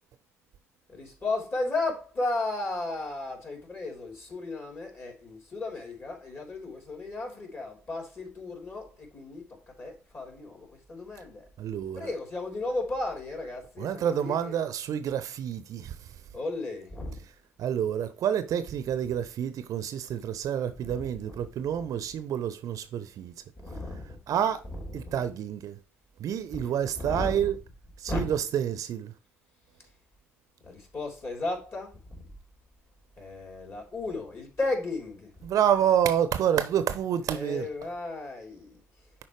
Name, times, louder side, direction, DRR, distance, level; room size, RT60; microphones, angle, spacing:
voice 1, 0.9-11.4 12.0-14.6 16.3-17.2 20.8-21.4 23.6-24.4 24.7-25.2 26.5-27.5 28.1-28.3 30.6-32.2 33.2-35.5 37.3-38.8, left 2 dB, 35° left, 3.6 m, -35 dB
voice 2, 11.6-12.1 13.8-16.2 17.6-23.3 24.3-24.6 24.9-25.8 26.2-27.6 28.0-29.1 35.4-37.7, right 9 dB, 55° right, 0.7 m, -28 dB
10.5 x 4.3 x 3.2 m
figure-of-eight pair, 50°, 7 cm